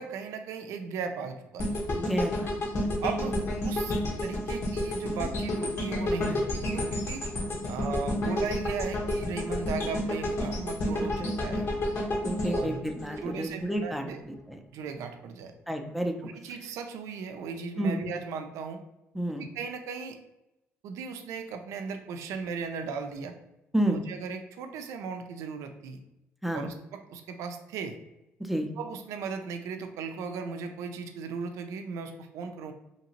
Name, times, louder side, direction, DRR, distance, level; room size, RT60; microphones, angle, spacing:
voice 1, 0.0-1.8 3.0-4.0 4.2-7.2 7.7-11.7 12.4-12.8 13.2-14.2 14.7-15.5 16.4-18.8 19.4-20.2 20.8-23.4 23.8-26.0 26.5-28.0 28.8-32.7, right 5 dB, 80° right, 6 dB, 0.4 m, -37 dB
sound 1, 1.6-13.8 14.2-14.3, left 1 dB, 55° left, 1.0 m, -30 dB
voice 2, 2.1-2.5 2.8-3.0 11.2-11.4 12.2-14.6 15.7-16.1 17.8-18.0 19.1-19.5 23.7-24.0 26.4-26.7 28.4-28.7, right 1 dB, ahead, 3 dB, 0.4 m, -30 dB
2.8 x 2.7 x 2.8 m, 0.92 s
supercardioid pair, 75°, 5 cm